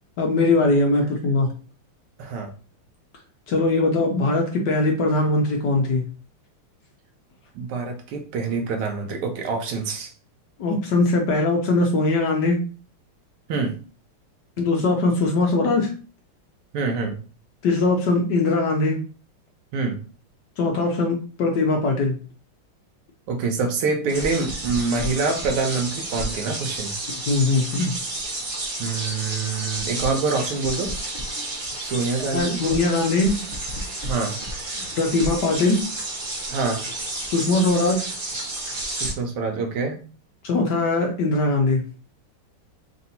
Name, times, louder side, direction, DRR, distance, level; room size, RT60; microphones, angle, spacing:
voice 1, 0.2-1.5 3.5-6.0 10.6-12.6 14.6-15.9 17.6-19.0 20.6-22.2 27.3-27.9 32.3-33.3 35.0-35.9 37.2-38.0 40.4-41.8, left 2 dB, 65° left, 1 dB, 1.2 m, -21 dB
voice 2, 2.2-2.5 7.5-10.1 13.5-13.8 16.7-17.2 19.7-20.0 23.3-26.9 28.8-30.9 31.8-32.6 34.1-34.3 36.5-36.9 38.9-40.0, right 4 dB, 85° right, 3 dB, 1.6 m, -26 dB
sound 1, 24.1-39.1, right 1 dB, 50° right, 0.6 m, -31 dB
3.9 x 2.6 x 4.1 m, 0.37 s
omnidirectional pair, 2.4 m